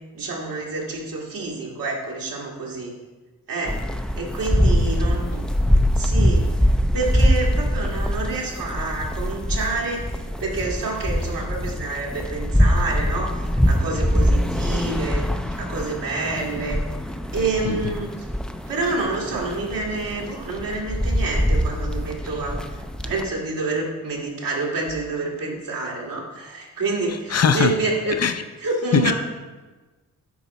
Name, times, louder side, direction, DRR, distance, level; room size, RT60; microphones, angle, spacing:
voice 1, 0.1-2.9 3.5-3.8 4.2-10.2 10.4-15.3 15.5-16.8 17.3-18.3 18.7-22.6 23.0-28.2 28.6-29.1, right 3 dB, 85° right, -3 dB, 1.8 m, -28 dB
sound 1, 3.7-23.3, equal, ahead, 0.4 m, -23 dB
voice 2, 27.3-27.7 28.2-28.3 28.9-29.1, left 6 dB, 50° left, 9 dB, 0.6 m, -19 dB
9.8 x 4.5 x 4.1 m, 1.3 s
cardioid pair, 80°, 33 cm